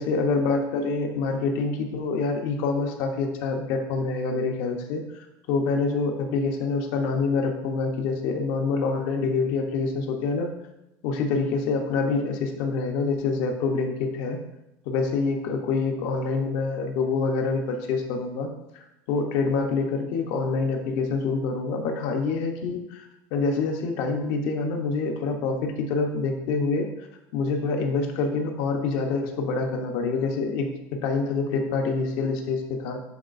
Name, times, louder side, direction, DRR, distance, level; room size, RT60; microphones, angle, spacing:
voice 1, 0.0-10.5 11.0-14.4 14.9-18.5 19.1-23.1 23.3-26.9 27.3-30.7 31.0-33.0, left 4 dB, 60° left, 4 dB, 1.0 m, -26 dB
10.5 x 4.1 x 2.6 m, 0.90 s
cardioid pair, 175°, 8 cm